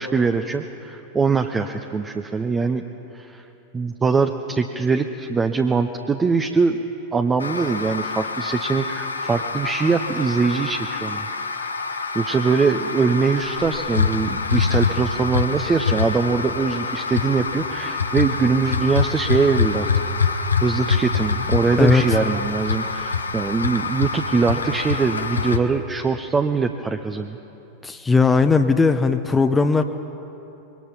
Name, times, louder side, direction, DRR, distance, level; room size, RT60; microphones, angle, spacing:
voice 1, 0.0-2.8 3.1-3.4 3.7-6.8 7.1-11.3 11.5-11.7 12.1-19.9 20.6-27.4, right 4 dB, 15° right, 6 dB, 0.9 m, -22 dB
sound 1, 7.4-25.6, left 5 dB, 75° left, 1.3 m, -25 dB
voice 2, 27.8-29.8, left 4 dB, 10° left, 7 dB, 0.9 m, -17 dB
25.5 x 22.5 x 5.9 m, 3.0 s
figure-of-eight pair, 90°, 0 cm